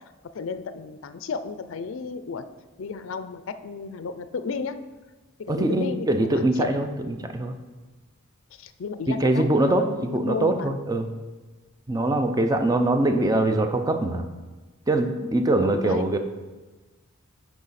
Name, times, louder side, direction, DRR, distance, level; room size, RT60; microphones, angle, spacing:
voice 1, 0.3-2.5 2.8-4.8 5.4-6.1 6.3-6.7 8.5-9.4 9.8-10.8 15.6-16.1, left 5 dB, 65° left, 11 dB, 0.4 m, -33 dB
voice 2, 5.5-7.6 9.1-11.1 11.9-14.3 14.9-16.2, right 2 dB, 15° right, 7 dB, 0.5 m, -23 dB
8.7 x 4.7 x 4.2 m, 1.3 s
head